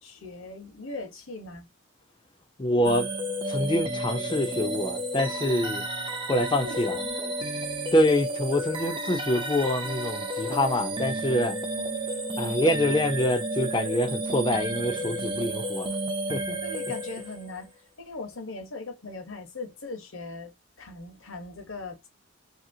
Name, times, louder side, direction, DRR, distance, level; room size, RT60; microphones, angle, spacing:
voice 1, 0.0-1.7 6.6-7.3 11.7-12.6 16.6-17.7 18.0-22.1, left 3 dB, 70° left, 1.1 m, -40 dB
voice 2, 2.6-3.1 3.5-5.8 6.3-7.7 7.9-11.6 12.4-15.9 16.3-16.6, left 1 dB, 20° left, 0.5 m, -26 dB
sound 1, 2.8-17.6, right 1 dB, 25° right, 0.5 m, -32 dB
2.9 x 2.8 x 2.7 m
head